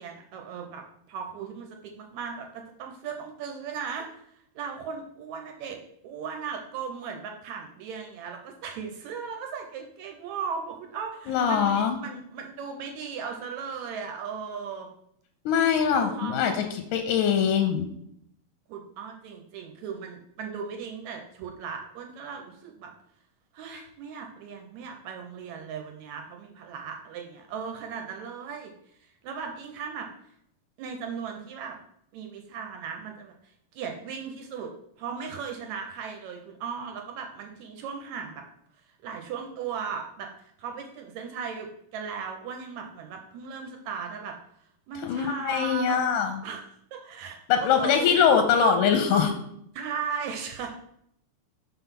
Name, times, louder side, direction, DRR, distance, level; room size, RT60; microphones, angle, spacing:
voice 1, 0.0-4.2 4.6-5.8 6.0-14.9 15.9-16.3 18.7-22.9 23.5-28.7 29.0-30.1 30.8-31.8 32.1-34.7 35.0-38.4 39.0-44.4 44.9-46.0 46.4-48.1 49.7-50.7, right 6 dB, 75° right, 3 dB, 1.8 m, -37 dB
voice 2, 11.3-12.0 15.5-16.7 16.9-17.9 45.0-46.4 47.5-49.3, left 7 dB, 85° left, 5 dB, 2.1 m, -22 dB
5.6 x 3.9 x 5.7 m, 0.73 s
omnidirectional pair, 3.6 m